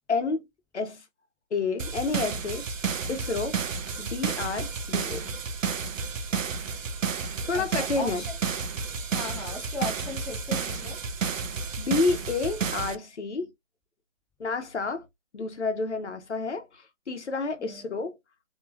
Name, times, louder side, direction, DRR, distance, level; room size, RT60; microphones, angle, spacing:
voice 1, 0.1-0.4 0.7-1.0 1.5-2.7 3.1-3.6 4.0-5.3 7.5-8.2 11.8-13.5 14.4-15.0 15.3-18.1, left 4 dB, 60° left, 1.0 m, -29 dB
sound 1, 1.8-13.0, right 5 dB, 85° right, 0.7 m, -31 dB
voice 2, 7.5-8.4 9.1-11.0 17.6-17.9, left 2 dB, ahead, 0.4 m, -37 dB
3.0 x 2.8 x 2.4 m
hypercardioid pair, 175°, 38 cm